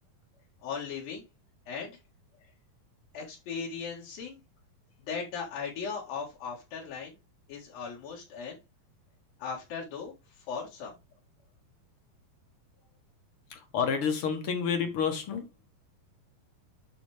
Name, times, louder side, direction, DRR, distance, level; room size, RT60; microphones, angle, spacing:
voice 1, 0.6-1.2 1.7-1.9 3.1-4.4 5.1-7.2 7.5-8.6 9.4-10.9, left 6 dB, 75° left, 3.6 m, -38 dB
voice 2, 13.5-15.5, left 6 dB, 50° left, 1.9 m, -29 dB
12.5 x 4.2 x 3.4 m
omnidirectional pair, 4.2 m